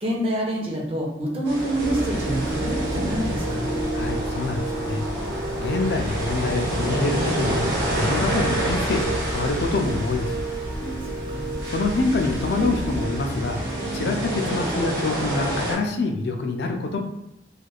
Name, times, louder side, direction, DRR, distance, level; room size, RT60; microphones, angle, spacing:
voice 1, 0.0-3.8 11.0-11.5, right 1 dB, 30° right, -2 dB, 0.6 m, -27 dB
sound 1, 1.4-15.7, equal, 90° right, 1.1 m, -29 dB
sound 2, 1.8-14.8, right 2 dB, 50° right, 1.1 m, -30 dB
voice 2, 3.9-5.0 5.6-7.6 8.0-10.5 11.6-13.6 13.9-17.0, left 3 dB, 65° left, 3 dB, 0.4 m, -26 dB
3.3 x 2.4 x 2.3 m, 0.87 s
head